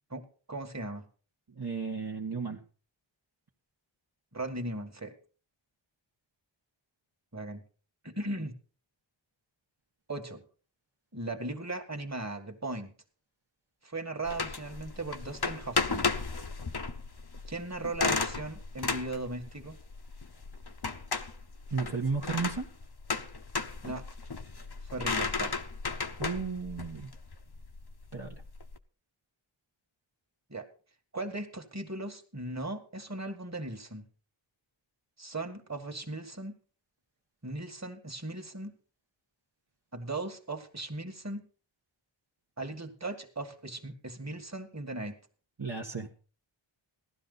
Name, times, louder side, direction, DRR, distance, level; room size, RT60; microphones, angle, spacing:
voice 1, 0.1-1.1 4.3-5.1 7.3-7.6 8.0-8.6 10.1-10.4 11.1-12.9 13.8-16.1 17.5-19.8 23.8-24.1 24.9-25.5 30.5-30.7 31.1-34.1 35.2-36.5 37.4-38.7 39.9-41.4 42.6-45.2, right 2 dB, 35° right, 5 dB, 2.0 m, -38 dB
voice 2, 1.5-2.6 21.7-22.7 26.2-27.1 28.1-28.4 45.6-46.1, right 5 dB, 55° right, -1 dB, 1.5 m, -33 dB
Knarrender Holzboden in Orgel, 14.3-28.8, left 4 dB, 50° left, 1.1 m, -34 dB
16.0 x 12.0 x 4.0 m, 0.38 s
wide cardioid pair, 50°, 48 cm